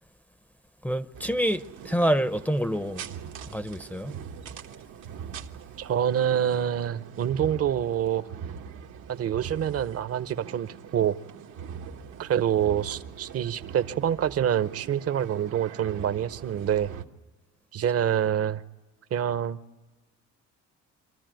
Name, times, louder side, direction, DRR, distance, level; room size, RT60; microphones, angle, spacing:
voice 1, 0.8-3.0 3.5-4.2, equal, 5° left, 0.6 m, -27 dB
sound 1, 1.1-17.0, right 7 dB, 85° right, 1.3 m, -42 dB
voice 2, 5.8-8.3 9.1-11.2 12.2-16.9 17.7-18.6 19.1-19.6, right 9 dB, 50° right, 0.8 m, -26 dB
25.5 x 14.0 x 9.1 m
cardioid pair, 90°, 30 cm